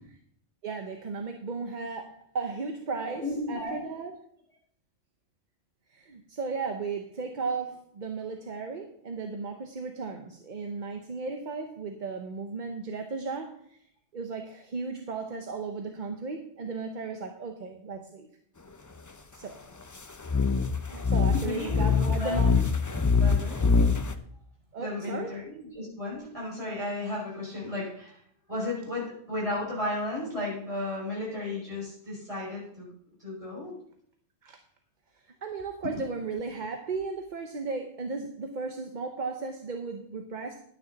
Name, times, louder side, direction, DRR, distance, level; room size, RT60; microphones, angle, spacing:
voice 1, 0.6-3.2 3.5-4.1 5.9-13.8 14.1-18.3 19.3-19.6 20.8-22.6 24.7-25.3 34.4-34.6 35.1-40.6, right 4 dB, 45° right, 5 dB, 0.9 m, -35 dB
voice 2, 3.0-3.8 21.3-22.4 23.2-23.7 24.8-28.2 28.5-32.9 33.2-33.7, left 2 dB, 30° right, -6 dB, 5.9 m, -34 dB
sound 1, 20.2-24.1, left 5 dB, 25° left, 0.4 m, -24 dB
11.5 x 9.6 x 4.0 m, 0.68 s
omnidirectional pair, 1.2 m